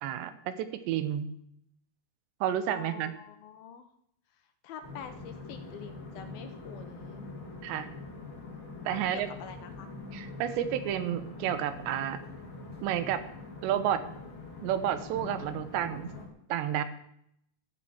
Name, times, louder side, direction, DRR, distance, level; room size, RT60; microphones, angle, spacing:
voice 1, 0.0-1.3 2.4-3.1 7.6-7.9 8.9-9.3 10.1-12.2 12.8-13.2 13.6-14.0 14.6-16.1 16.5-16.8, right 10 dB, 85° right, 11 dB, 3.3 m, -30 dB
voice 2, 2.7-3.9 4.6-7.3 8.9-9.9, left 8 dB, 75° left, 9 dB, 2.4 m, -46 dB
sound 1, 4.8-16.3, left 3 dB, 35° left, 3.0 m, -44 dB
sound 2, 15.1-16.1, equal, 30° right, 2.6 m, -50 dB
13.0 x 7.6 x 8.6 m, 0.73 s
omnidirectional pair, 4.9 m